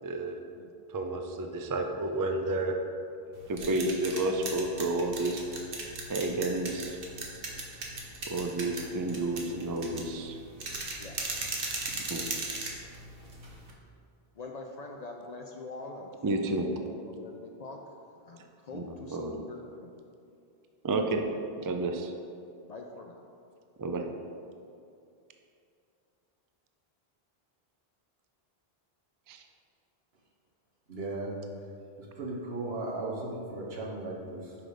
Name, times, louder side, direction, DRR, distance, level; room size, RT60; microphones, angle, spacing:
voice 1, 0.0-0.4 0.9-2.8 3.5-5.4 6.1-7.0 8.3-10.4 11.9-12.2 16.2-16.7 18.7-19.4 20.8-21.2 21.6-22.1 23.8-24.0 29.3-29.4, right 2 dB, 35° right, 4 dB, 0.3 m, -31 dB
sound 1, 3.3-13.7, right 3 dB, 60° right, 1.2 m, -38 dB
voice 2, 14.3-17.8 18.2-19.9 22.6-23.2, left 3 dB, 55° left, 2 dB, 0.5 m, -44 dB
voice 3, 30.9-31.3 32.0-34.6, right 2 dB, 80° right, -3 dB, 1.4 m, -36 dB
5.9 x 5.1 x 4.9 m, 2.5 s
omnidirectional pair, 1.0 m